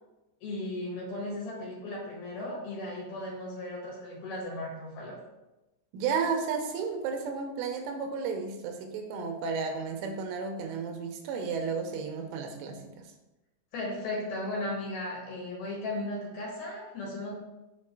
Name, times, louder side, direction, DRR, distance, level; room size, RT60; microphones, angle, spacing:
voice 1, 0.4-5.2 13.7-17.3, left 1 dB, 60° left, -4 dB, 3.0 m, -36 dB
voice 2, 5.9-13.1, right 5 dB, 85° right, 4 dB, 3.2 m, -33 dB
7.4 x 5.2 x 4.7 m, 1.0 s
omnidirectional pair, 5.8 m